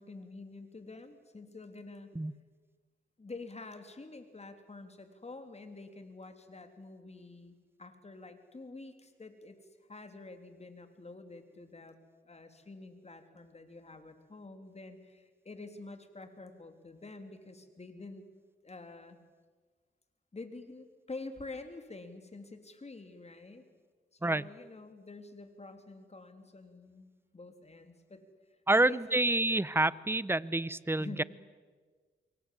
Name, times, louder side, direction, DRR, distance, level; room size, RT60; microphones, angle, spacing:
voice 1, 0.0-2.1 3.2-9.6 9.9-12.0 12.2-18.2 18.6-19.2 20.3-23.6 24.1-28.2 28.7-29.2 29.5-29.6 30.5-30.6 31.0-31.2, left 3 dB, 35° left, 7 dB, 3.4 m, -48 dB
voice 2, 28.7-31.2, right 2 dB, 10° right, 19 dB, 0.8 m, -28 dB
27.0 x 23.0 x 7.7 m, 1.5 s
cardioid pair, 60°, 19 cm